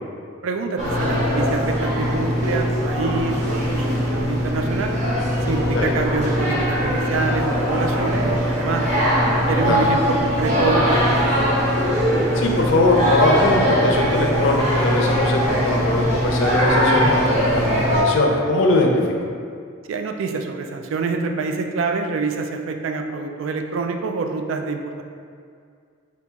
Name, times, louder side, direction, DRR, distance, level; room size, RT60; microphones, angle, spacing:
voice 1, 0.4-5.0 5.5-8.8 9.5-11.5 19.9-25.0, right 4 dB, 65° right, 4 dB, 0.3 m, -26 dB
sound 1, 0.8-18.0, equal, 35° right, 1.0 m, -21 dB
voice 2, 12.3-18.9, left 2 dB, 65° left, 0 dB, 0.5 m, -21 dB
4.5 x 2.3 x 3.9 m, 2.3 s
head